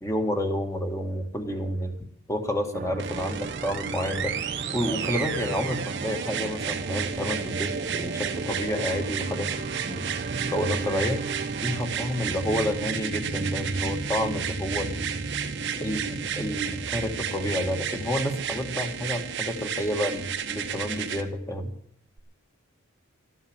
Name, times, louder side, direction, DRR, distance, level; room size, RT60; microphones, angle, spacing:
voice 1, 0.0-1.9 2.3-4.3 4.7-9.5 9.9-10.1 10.5-11.2 11.6-15.2 15.8-21.7, equal, 15° left, 5 dB, 1.8 m, -29 dB
sound 1, 2.7-19.2, right 3 dB, 40° right, 0.6 m, -35 dB
sound 2, 3.0-21.2 22.2-22.3, right 8 dB, 55° right, 1.2 m, -33 dB
13.5 x 9.7 x 8.7 m, 0.66 s
head